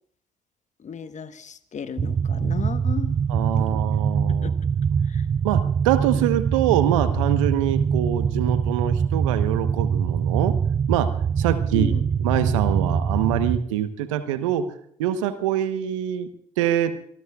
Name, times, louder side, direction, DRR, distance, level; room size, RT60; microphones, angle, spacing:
voice 1, 0.8-3.2 3.6-3.8 4.3-4.7 5.0-5.3 11.7-12.0, left 6 dB, 50° left, 12 dB, 1.3 m, -35 dB
sound 1, 2.0-13.6, right 7 dB, 35° right, 0.5 m, -23 dB
voice 2, 3.3-4.5 5.4-10.5 10.9-11.9 12.2-14.7 15.0-16.3 16.6-17.0, right 11 dB, 85° right, 11 dB, 1.1 m, -24 dB
25.5 x 19.0 x 2.4 m, 0.64 s
hypercardioid pair, 40°, 16 cm